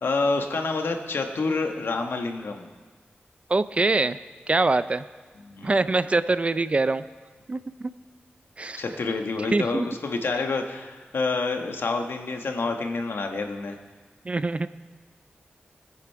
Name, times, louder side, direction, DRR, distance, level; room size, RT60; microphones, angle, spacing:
voice 1, 0.0-2.7 5.4-5.7 8.8-13.8, left 3 dB, 80° left, 4 dB, 1.3 m, -28 dB
voice 2, 3.5-4.2 4.5-5.0 5.6-7.0 7.5-7.9 8.6-8.8 9.5-9.9 14.3-14.7, right 3 dB, 35° right, 14 dB, 0.4 m, -23 dB
20.5 x 9.9 x 4.6 m, 1.4 s
wide cardioid pair, 110°, 4 cm